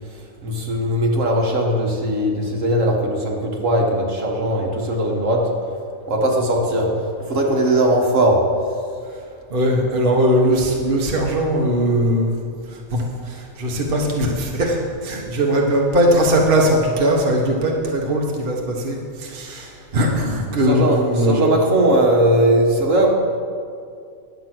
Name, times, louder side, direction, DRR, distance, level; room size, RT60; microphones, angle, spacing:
voice 1, 0.4-5.5 6.1-6.9 7.3-8.4 20.6-23.1, right 1 dB, 60° right, -1 dB, 1.8 m, -19 dB
voice 2, 9.5-12.3 12.9-21.5, equal, 40° right, -1 dB, 1.2 m, -19 dB
10.5 x 7.8 x 6.0 m, 2.3 s
omnidirectional pair, 1.5 m